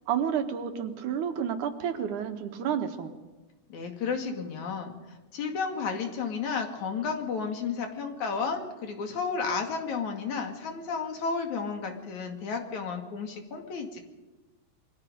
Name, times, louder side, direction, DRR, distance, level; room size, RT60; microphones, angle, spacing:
voice 1, 0.1-3.1, right 8 dB, 80° right, 6 dB, 3.0 m, -30 dB
voice 2, 3.7-14.0, left 5 dB, 70° left, 4 dB, 3.6 m, -32 dB
27.5 x 22.5 x 5.3 m, 1.1 s
omnidirectional pair, 3.5 m